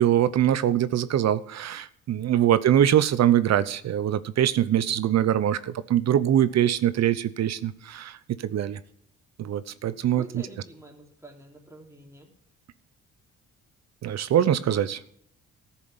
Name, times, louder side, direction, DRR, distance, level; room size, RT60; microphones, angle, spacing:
voice 1, 0.0-8.2 8.5-8.8 9.4-10.4 14.0-15.0, right 11 dB, 60° right, 15 dB, 0.8 m, -23 dB
voice 2, 2.3-2.6 10.2-12.3, right 1 dB, 10° right, 0 dB, 3.3 m, -46 dB
13.5 x 7.2 x 8.1 m, 0.66 s
cardioid pair, 90°, 30 cm